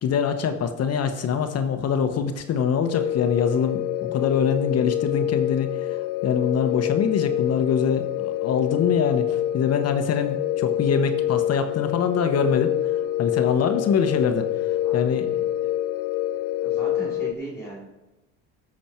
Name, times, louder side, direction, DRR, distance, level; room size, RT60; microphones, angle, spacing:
voice 1, 0.0-6.0 6.2-12.7 13.2-15.7, left 6 dB, 45° left, 8 dB, 1.0 m, -24 dB
sound 1, 2.9-17.3, left 12 dB, 80° left, 0.5 m, -26 dB
voice 2, 14.8-15.2 16.6-17.9, right 1 dB, 5° left, -4 dB, 3.5 m, -37 dB
13.0 x 6.3 x 4.5 m, 1.0 s
supercardioid pair, 105°, 36 cm